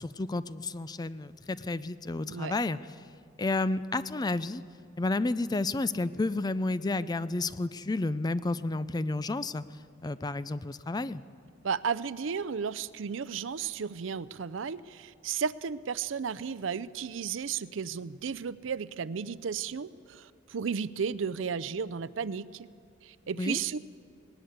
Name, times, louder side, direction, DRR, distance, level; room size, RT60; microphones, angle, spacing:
voice 1, 0.0-2.8 3.4-4.6 5.0-9.6 10.0-11.2 23.4-23.6, left 2 dB, 20° left, 16 dB, 0.4 m, -31 dB
voice 2, 11.6-22.7 23.0-23.8, right 6 dB, 75° right, 18 dB, 0.5 m, -34 dB
19.0 x 18.5 x 8.1 m, 2.3 s
head